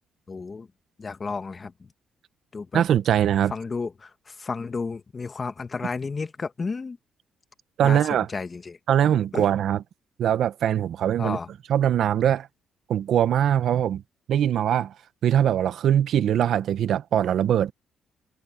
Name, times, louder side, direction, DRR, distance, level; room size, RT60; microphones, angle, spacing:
voice 1, 0.3-0.7 1.0-1.7 2.5-2.8 3.5-7.0 7.8-8.0 8.3-8.8 9.3-9.5 11.2-11.5, left 4 dB, 35° left, 1.7 m, -32 dB
voice 2, 2.7-3.5 7.8-8.3 8.9-9.8 10.2-11.4 11.7-12.5 12.9-14.0 14.3-14.9 15.2-17.7, right 10 dB, 70° right, 1.0 m, -22 dB
cardioid pair, 90°, 0 cm